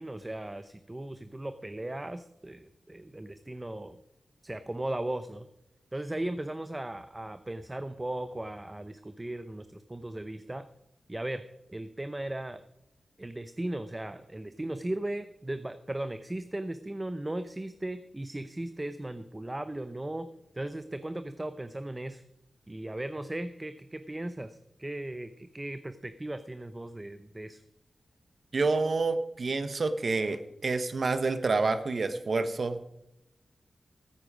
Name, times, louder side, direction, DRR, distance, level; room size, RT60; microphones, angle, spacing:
voice 1, 0.0-4.0 4.4-5.5 5.9-10.7 11.1-11.4 11.7-12.6 13.2-20.3 20.5-22.2 22.7-27.6, right 1 dB, 20° right, 11 dB, 0.7 m, -37 dB
voice 2, 28.5-32.8, right 3 dB, 60° right, 11 dB, 1.1 m, -28 dB
14.5 x 8.9 x 5.0 m, 0.88 s
cardioid pair, 55°, 0 cm